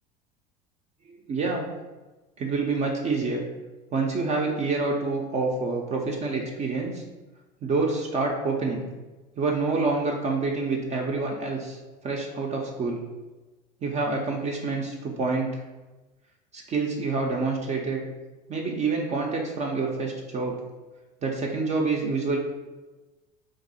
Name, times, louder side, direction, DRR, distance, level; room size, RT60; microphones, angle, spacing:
voice 1, 1.1-1.7 2.4-3.4 3.9-7.0 7.6-8.8 9.4-13.0 13.8-15.5 16.5-18.0 18.5-20.6 21.2-22.4, right 3 dB, 30° right, 0 dB, 0.6 m, -27 dB
2.7 x 2.6 x 4.0 m, 1.2 s
hypercardioid pair, 75°, 21 cm